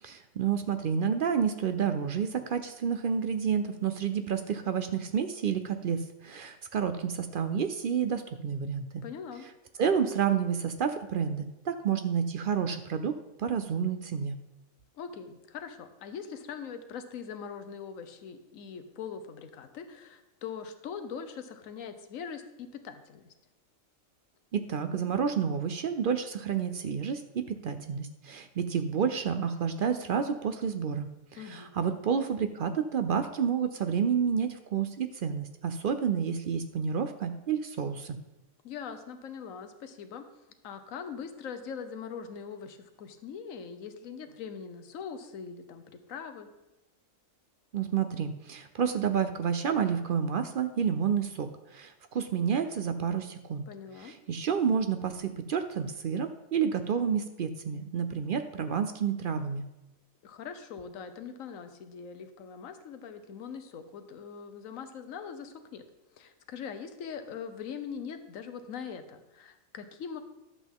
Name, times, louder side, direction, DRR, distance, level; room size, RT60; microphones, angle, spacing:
voice 1, 0.0-9.0 9.8-14.4 24.5-38.2 47.7-53.7 54.0-59.6, right 7 dB, 60° right, 9 dB, 0.5 m, -30 dB
voice 2, 9.0-9.5 14.9-23.3 31.4-31.7 38.6-40.3 40.6-46.5 53.7-54.1 60.2-65.8 66.1-70.2, left 6 dB, 75° left, 8 dB, 1.2 m, -42 dB
11.0 x 7.6 x 3.6 m, 0.97 s
omnidirectional pair, 1.4 m